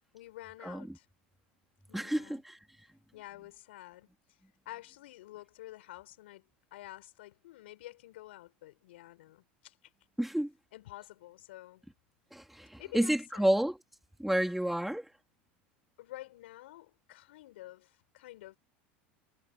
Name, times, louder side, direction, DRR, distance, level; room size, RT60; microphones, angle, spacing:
voice 1, 0.1-1.1 1.9-2.4 3.1-4.1 4.6-6.4 6.7-9.9 10.7-11.8 12.8-13.5 16.0-18.6, left 16 dB, 75° left, 6.8 m, -49 dB
voice 2, 1.9-2.5 10.2-10.5 12.3-13.8 14.2-15.0, right 1 dB, 5° right, 3.4 m, -30 dB
hypercardioid pair, 95°, 6 cm